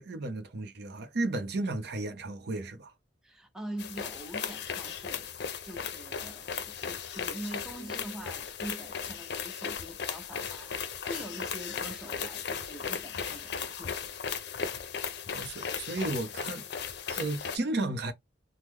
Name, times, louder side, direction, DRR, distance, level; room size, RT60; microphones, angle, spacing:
voice 1, 0.0-2.9 15.3-16.6 17.1-18.1, right 2 dB, 60° right, 0.6 m, -33 dB
voice 2, 3.2-5.3 5.6-14.0, right 1 dB, 5° right, 0.6 m, -44 dB
sound 1, 3.8-17.6, left 6 dB, 65° left, 0.5 m, -36 dB
3.0 x 2.1 x 3.6 m
head